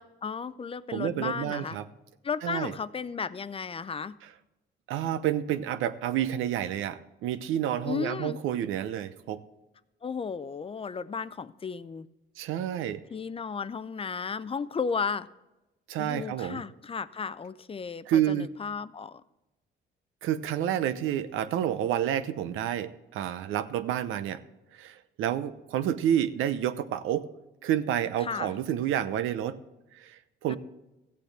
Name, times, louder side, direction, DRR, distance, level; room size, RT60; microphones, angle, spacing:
voice 1, 0.0-1.8 2.2-4.1 7.9-8.4 10.0-12.1 13.1-15.3 16.0-19.2 28.2-28.5 30.5-30.6, left 5 dB, 30° left, 0.5 m, -34 dB
voice 2, 0.9-1.9 2.4-2.7 4.9-9.4 12.4-13.0 15.9-16.6 18.1-18.5 20.2-24.4 24.7-27.3 27.6-29.6 29.9-30.6, right 10 dB, 90° right, 0.7 m, -29 dB
15.0 x 8.5 x 3.4 m
cardioid pair, 90°, 20 cm